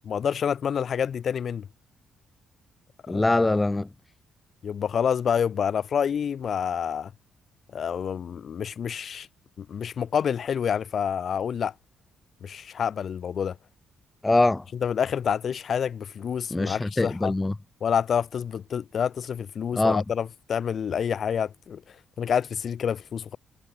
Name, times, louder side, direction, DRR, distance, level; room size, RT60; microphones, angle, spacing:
voice 1, 0.1-1.7 3.1-3.2 4.6-7.1 7.7-9.3 9.6-11.7 12.4-13.6 14.7-17.3 17.8-23.4, left 7 dB, 55° left, 2.7 m, -28 dB
voice 2, 3.1-3.9 14.2-14.6 16.5-17.5 19.8-20.0, left 2 dB, 15° left, 0.8 m, -23 dB
cardioid pair, 90°, 0 cm